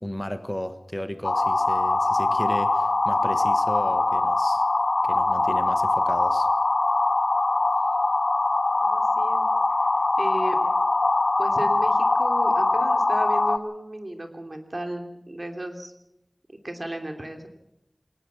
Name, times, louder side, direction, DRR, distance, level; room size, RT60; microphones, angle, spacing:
voice 1, 0.0-4.6 5.0-6.5, left 1 dB, 15° left, 10 dB, 1.3 m, -34 dB
sound 1, 1.2-13.6, left 2 dB, 75° left, 0.9 m, -22 dB
voice 2, 8.8-9.4 10.2-10.7 11.4-15.9 16.5-17.5, right 1 dB, 50° right, 5 dB, 3.0 m, -34 dB
21.5 x 18.5 x 7.1 m, 0.81 s
wide cardioid pair, 45°, 0 cm